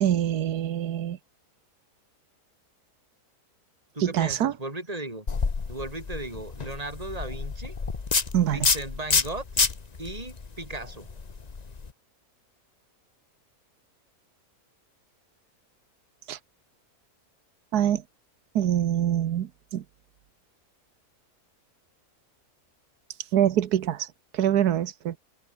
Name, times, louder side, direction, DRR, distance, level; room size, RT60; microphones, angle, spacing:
voice 1, 0.0-1.2 4.0-4.5 8.3-8.7 16.3-16.4 17.7-18.0 18.5-19.8 23.3-24.1 24.3-25.2, right 10 dB, 85° right, 1.5 m, -24 dB
voice 2, 3.9-5.2 5.7-7.8 8.5-9.6 10.0-11.1, right 2 dB, 25° right, 4.9 m, -36 dB
sound 1, 5.3-11.9, left 4 dB, 30° left, 1.1 m, -29 dB
omnidirectional pair, 1.6 m